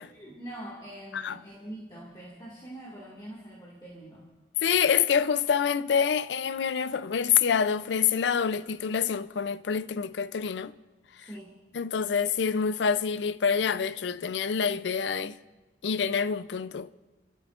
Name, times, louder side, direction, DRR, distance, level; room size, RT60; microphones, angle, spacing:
voice 1, 0.1-4.3 11.3-11.5, right 1 dB, 25° left, 1.9 m, -43 dB
voice 2, 4.6-10.7 11.7-15.4 15.8-16.9, left 7 dB, 85° left, 0.4 m, -26 dB
28.0 x 13.0 x 2.5 m
head